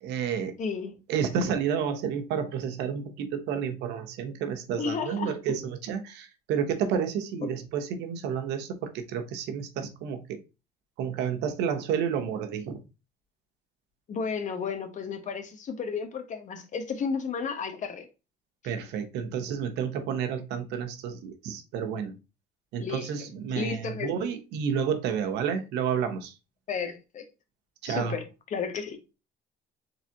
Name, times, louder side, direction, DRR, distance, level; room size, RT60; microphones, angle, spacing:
voice 1, 0.0-0.5 1.1-10.4 11.0-12.8 18.6-22.2 22.7-26.3 27.8-28.2, right 7 dB, 85° right, 1.0 m, -30 dB
voice 2, 0.6-1.0 4.8-5.3 7.4-7.5 14.1-18.1 22.8-23.1 23.5-24.3 26.7-27.3 27.8-29.0, left 6 dB, 45° left, 1.1 m, -33 dB
4.0 x 3.5 x 2.8 m
cardioid pair, 110°, 17 cm